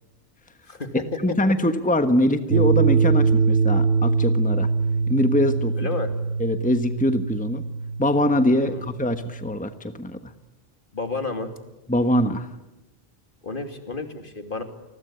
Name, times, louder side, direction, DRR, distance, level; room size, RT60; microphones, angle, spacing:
voice 1, 0.7-1.4 5.7-6.1 8.6-8.9 10.9-11.5 13.4-14.6, left 3 dB, 55° left, 6 dB, 3.0 m, -31 dB
voice 2, 1.2-4.7 5.1-5.7 6.4-7.6 8.0-10.3 11.9-12.5, left 1 dB, 10° left, 8 dB, 1.3 m, -23 dB
sound 1, 2.5-9.6, right 4 dB, 90° right, 1.7 m, -23 dB
29.0 x 20.5 x 10.0 m, 0.99 s
omnidirectional pair, 1.1 m